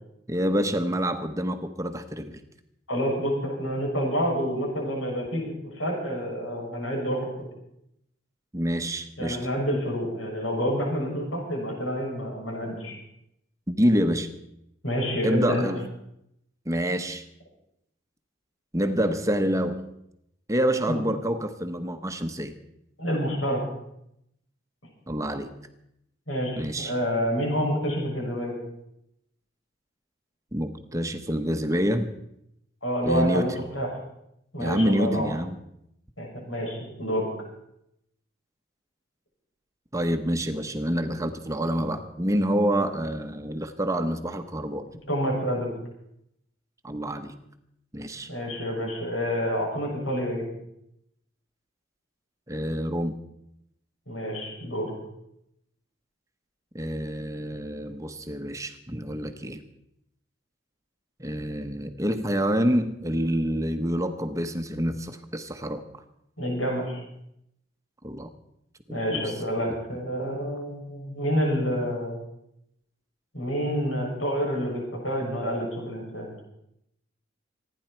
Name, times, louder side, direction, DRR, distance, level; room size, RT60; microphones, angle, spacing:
voice 1, 0.3-2.4 8.5-9.4 13.7-14.3 15.2-15.9 16.7-17.2 18.7-19.9 20.5-22.5 25.1-25.5 26.6-26.9 30.5-32.1 33.0-33.6 34.6-35.6 39.9-44.9 46.8-47.3 47.9-48.3 52.5-53.2 56.7-59.6 61.2-65.8 68.0-68.3 68.9-69.2, equal, 15° right, 7 dB, 0.9 m, -27 dB
voice 2, 2.9-7.3 9.2-12.9 14.8-15.7 20.9-21.0 23.0-23.6 26.3-28.6 32.8-33.9 34.5-35.3 36.2-37.3 45.1-45.7 48.3-50.5 54.1-54.9 66.4-67.0 68.9-72.1 73.3-76.3, equal, 90° left, -2 dB, 7.1 m, -28 dB
26.5 x 10.0 x 4.5 m, 0.79 s
head